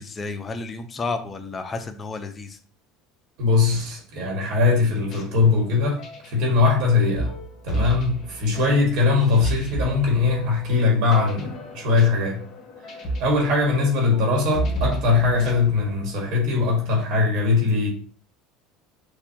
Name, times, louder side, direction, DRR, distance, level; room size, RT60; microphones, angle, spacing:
voice 1, 0.0-2.6, left 3 dB, 25° left, 0.6 m, -31 dB
voice 2, 3.4-7.3 7.6-12.4 13.2-17.9, left 4 dB, 65° right, 1.8 m, -21 dB
sound 1, 4.9-16.5, right 1 dB, 40° left, 1.5 m, -33 dB
6.5 x 2.7 x 2.9 m
supercardioid pair, 120°, 0 cm